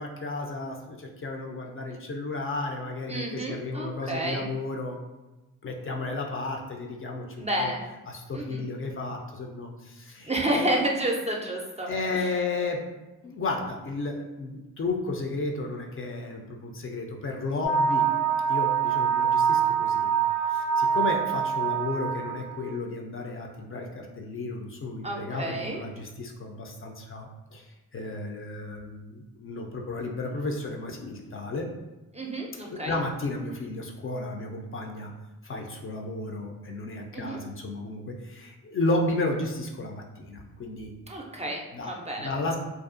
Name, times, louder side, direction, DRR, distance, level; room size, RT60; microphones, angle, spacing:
voice 1, 0.0-5.0 5.6-7.7 8.1-10.7 11.9-12.8 13.2-18.1 18.5-20.1 20.5-27.7 27.9-31.7 32.7-35.1 35.4-40.9 41.7-42.6, left 2 dB, 40° left, 1 dB, 0.4 m, -33 dB
voice 2, 3.1-4.5 7.4-7.8 8.3-8.6 10.2-12.3 25.0-25.8 32.1-33.0 37.1-37.4 41.1-42.3, right 1 dB, 20° right, -1 dB, 0.4 m, -30 dB
sound 1, 17.6-22.6, right 7 dB, 80° left, 0.8 m, -25 dB
2.4 x 2.3 x 2.4 m, 1.1 s
supercardioid pair, 50°, 36 cm